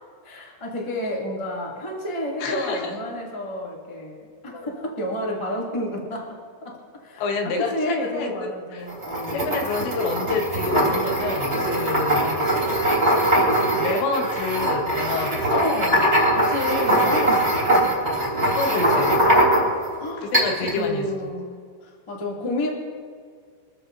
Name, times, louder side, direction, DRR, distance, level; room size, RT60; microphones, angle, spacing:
voice 1, 0.2-6.8 7.0-9.4 12.1-12.6 15.5-18.3 20.0-20.3 20.6-21.6 21.8-22.7, left 1 dB, 50° left, -3 dB, 0.3 m, -30 dB
voice 2, 2.4-2.9 7.2-8.9 9.3-12.3 13.7-15.6 18.4-19.2 20.2-21.1, left 4 dB, 70° left, 2 dB, 3.3 m, -28 dB
sound 1, 8.9-19.9 20.3-20.8, right 1 dB, 15° right, 4.0 m, -21 dB
25.5 x 14.0 x 2.7 m, 2.1 s
omnidirectional pair, 5.6 m